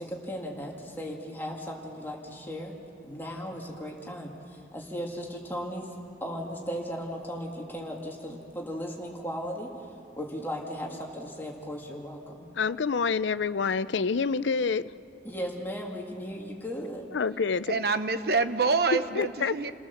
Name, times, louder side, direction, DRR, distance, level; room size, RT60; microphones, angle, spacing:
voice 1, 0.0-2.8 3.0-5.9 6.2-9.8 10.2-12.5 15.2-17.1, equal, 10° left, -1 dB, 2.2 m, -36 dB
voice 2, 12.6-14.9 17.1-17.8 19.2-19.7, left 5 dB, 85° left, 15 dB, 0.5 m, -27 dB
voice 3, 17.7-19.7, right 4 dB, 55° right, 9 dB, 0.9 m, -26 dB
29.0 x 18.5 x 7.1 m, 2.5 s
head